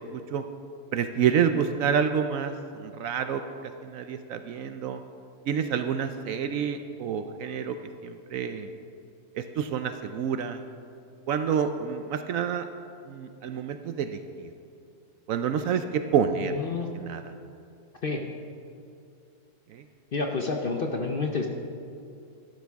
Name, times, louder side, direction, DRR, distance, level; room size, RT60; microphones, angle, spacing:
voice 1, 0.1-0.4 0.9-2.5 2.8-3.4 3.8-5.0 5.5-7.8 8.0-8.7 9.4-10.6 11.3-12.7 13.1-14.5 15.3-16.5 17.0-17.2, right 7 dB, 70° right, 8 dB, 0.9 m, -28 dB
voice 2, 16.4-16.9 18.0-18.2 20.1-21.5, left 3 dB, 50° left, 2 dB, 0.7 m, -29 dB
12.5 x 11.5 x 3.5 m, 2.5 s
omnidirectional pair, 1.7 m